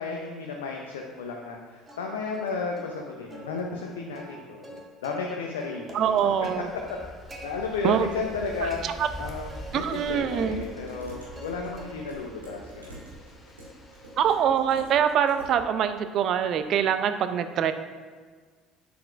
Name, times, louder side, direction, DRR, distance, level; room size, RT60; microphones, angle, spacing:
voice 1, 0.0-6.3 7.4-8.8 9.2-12.9, left 4 dB, 75° left, 1 dB, 0.6 m, -33 dB
Plucked string instrument, 1.9-2.5 2.8-2.9 3.3-5.3 5.6-7.5 7.9-8.4 8.7-9.7 10.0-11.5 11.8-12.3 12.7-16.9, right 1 dB, 25° right, 1.7 m, -47 dB
voice 2, 5.9-6.7 7.8-8.1 8.8-9.1 9.7-10.6 14.2-17.7, right 8 dB, 50° right, 10 dB, 0.5 m, -24 dB
sound 1, 6.1-14.4, left 1 dB, 20° left, 1.3 m, -45 dB
Dishes pots and pans, 9.3-15.6, right 1 dB, 85° right, 2.0 m, -46 dB
8.5 x 7.3 x 2.5 m, 1.5 s
figure-of-eight pair, 60°, 0 cm